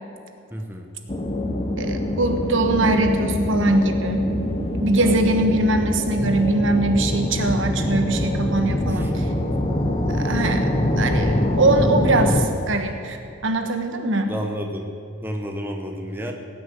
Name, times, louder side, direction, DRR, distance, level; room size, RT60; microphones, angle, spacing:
voice 1, 0.5-0.9 5.0-5.4 8.9-9.6 11.0-11.4 14.3-14.9 15.2-16.3, equal, 10° right, 2 dB, 0.9 m, -32 dB
sound 1, 1.1-12.5, left 1 dB, 25° left, 1.0 m, -24 dB
voice 2, 1.8-4.2 4.8-9.3 10.1-10.7 11.0-14.3, right 2 dB, 60° right, 6 dB, 1.3 m, -22 dB
17.5 x 6.3 x 9.4 m, 2.6 s
head